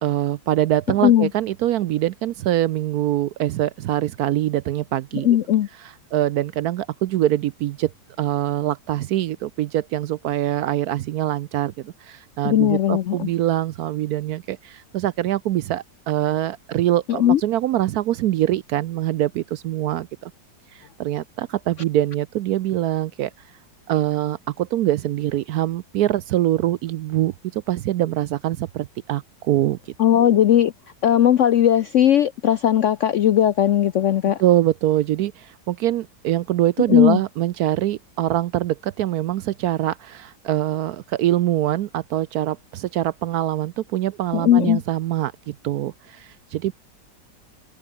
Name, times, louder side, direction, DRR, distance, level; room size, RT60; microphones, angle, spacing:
voice 1, 0.0-5.3 6.1-7.9 8.2-20.3 20.7-23.3 23.9-29.8 30.2-30.3 34.4-46.7, right 13 dB, 70° right, 1.0 m, -24 dB
voice 2, 5.2-5.7 12.4-13.3 17.1-17.4 30.0-30.7 31.0-34.4 36.9-37.2 44.3-44.8, left 11 dB, 70° left, 0.7 m, -17 dB
omnidirectional pair, 1.9 m